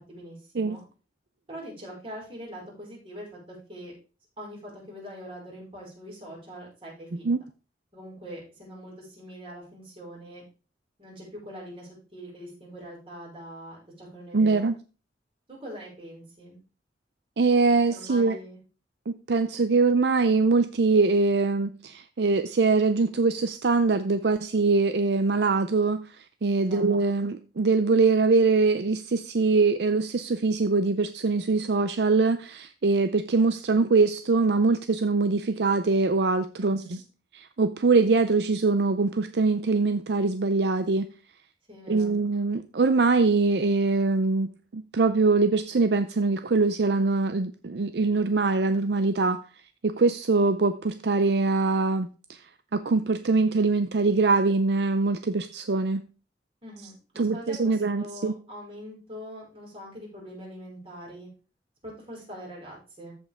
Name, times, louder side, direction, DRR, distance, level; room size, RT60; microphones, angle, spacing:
voice 1, 0.1-0.8 1.5-3.9 4.4-7.3 7.9-10.4 11.0-14.7 15.5-16.6 17.9-18.6 26.6-26.8 36.6-37.0 41.7-42.1 56.6-61.3 61.8-63.1, equal, 30° right, -4 dB, 5.5 m, -43 dB
voice 2, 14.3-14.7 17.4-18.4 19.1-26.0 26.4-36.8 37.3-41.1 41.9-49.4 49.8-52.1 52.7-56.0 57.2-58.3, right 3 dB, 65° right, 10 dB, 0.5 m, -23 dB
14.0 x 5.3 x 3.6 m, 0.35 s
head